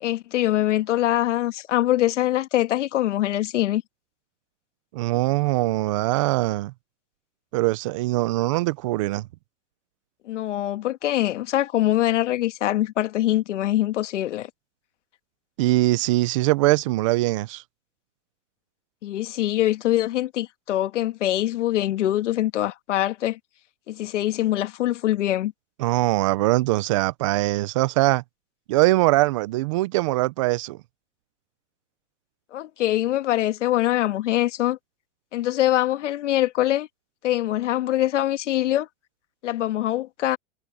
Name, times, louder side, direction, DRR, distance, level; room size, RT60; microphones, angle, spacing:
voice 1, 0.0-3.8 10.3-14.5 19.0-23.4 23.9-25.5 32.5-34.8 35.3-36.9 37.2-38.9 39.4-40.4, left 14 dB, 80° left, 1.7 m, -23 dB
voice 2, 4.9-6.7 7.5-9.3 15.6-17.6 25.8-28.2 28.7-30.8, right 19 dB, 30° right, 0.4 m, -22 dB
supercardioid pair, 160°, 36 cm